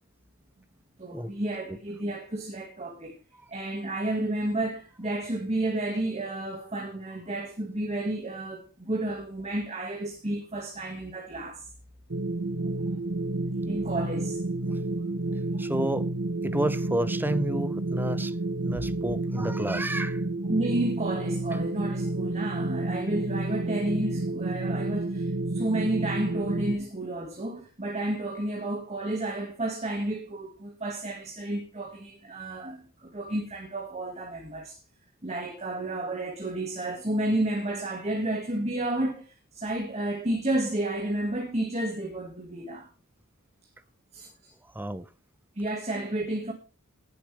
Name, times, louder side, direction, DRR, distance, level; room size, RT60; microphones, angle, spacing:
voice 1, 1.0-3.2 3.5-11.7 13.7-14.8 15.5-15.6 20.5-34.8 35.2-42.9 44.1-44.5 45.6-46.5, right 1 dB, 30° right, 1.9 m, -31 dB
sound 1, 12.1-26.8, right 2 dB, 55° right, 1.0 m, -30 dB
voice 2, 15.6-16.1 16.4-18.3 18.6-20.2 44.7-45.1, right 1 dB, 10° right, 0.7 m, -30 dB
19.0 x 7.8 x 3.4 m
head